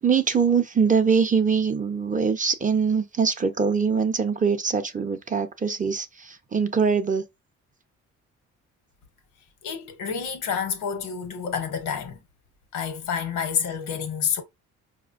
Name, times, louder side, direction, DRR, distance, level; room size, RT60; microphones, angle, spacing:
voice 1, 0.0-7.3, right 6 dB, 25° right, 0.5 m, -23 dB
voice 2, 9.6-12.2 12.7-14.4, left 7 dB, 85° left, 0.9 m, -28 dB
4.8 x 2.1 x 2.5 m
cardioid pair, 90°, 30 cm